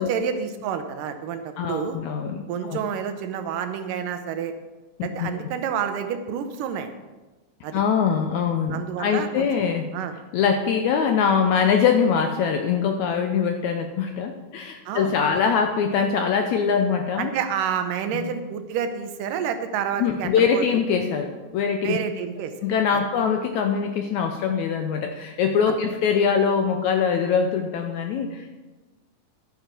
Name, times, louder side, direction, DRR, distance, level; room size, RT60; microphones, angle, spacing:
voice 1, 0.0-2.0 2.5-4.5 5.0-6.9 7.6-7.8 8.7-9.5 9.9-10.1 14.9-15.1 17.2-20.6 21.8-22.5 22.9-23.0 25.7-25.8, right 7 dB, 75° right, 8 dB, 2.4 m, -29 dB
voice 2, 1.6-2.4 2.7-2.8 5.0-5.4 7.7-9.9 10.3-17.3 18.1-18.3 20.0-22.0 22.6-28.5, left 6 dB, 80° left, 5 dB, 1.7 m, -23 dB
12.0 x 9.3 x 4.5 m, 1.2 s
omnidirectional pair, 4.0 m